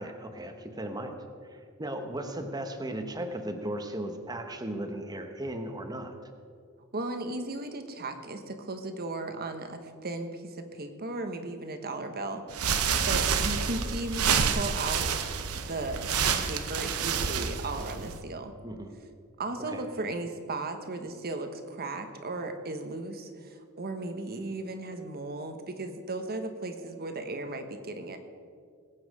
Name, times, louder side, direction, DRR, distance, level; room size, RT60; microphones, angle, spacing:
voice 1, 0.0-6.3 18.6-18.9 19.7-19.8, right 1 dB, 20° right, 6 dB, 1.0 m, -36 dB
voice 2, 6.9-15.2 15.6-18.5 19.4-28.2, right 2 dB, 45° right, 7 dB, 1.3 m, -36 dB
sound 1, 12.5-18.2, right 6 dB, 85° right, 0.9 m, -28 dB
20.5 x 8.8 x 4.9 m, 2.2 s
head